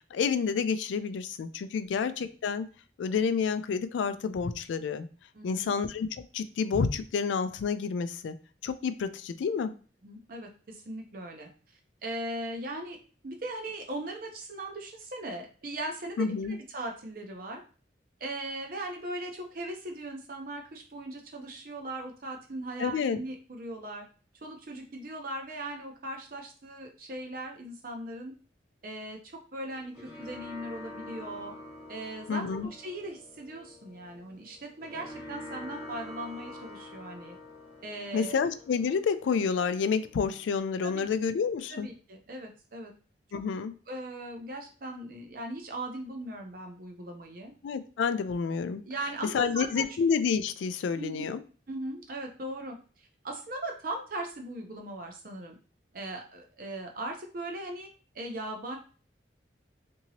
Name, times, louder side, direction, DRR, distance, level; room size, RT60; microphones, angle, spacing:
voice 1, 0.1-2.7 3.0-5.1 5.4-8.3 8.6-9.8 16.2-16.6 22.8-23.2 32.3-32.7 38.1-41.9 43.3-43.7 47.6-48.8 49.3-51.4, left 6 dB, 85° left, 12 dB, 0.3 m, -29 dB
voice 2, 5.3-5.7 10.0-11.5 12.0-13.0 13.2-17.6 18.2-24.0 24.4-28.3 28.8-31.5 31.9-37.4 37.8-38.4 40.8-41.0 41.7-42.9 43.9-47.5 48.9-49.9 50.9-51.3 51.7-55.5 55.9-57.9 58.1-58.8, right 1 dB, 50° right, 2 dB, 0.6 m, -39 dB
sound 1, 29.6-40.6, left 2 dB, 25° right, 0.9 m, -46 dB
2.8 x 2.7 x 2.8 m, 0.39 s
head